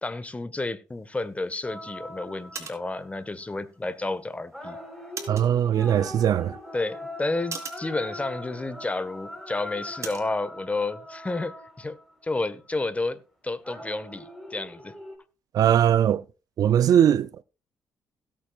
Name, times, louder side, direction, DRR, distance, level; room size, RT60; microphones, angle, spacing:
voice 1, 0.0-4.8 6.7-12.0 12.2-14.9, left 2 dB, 20° left, 1.5 m, -31 dB
sound 1, 0.9-10.4, right 5 dB, 45° right, 3.7 m, -45 dB
sound 2, 1.6-3.3 4.5-12.4 13.6-15.2, left 1 dB, ahead, 4.2 m, -41 dB
voice 2, 5.3-6.6 15.5-16.2 16.6-17.4, right 10 dB, 60° right, 0.5 m, -20 dB
17.0 x 8.9 x 2.5 m
cardioid pair, 75°, 7 cm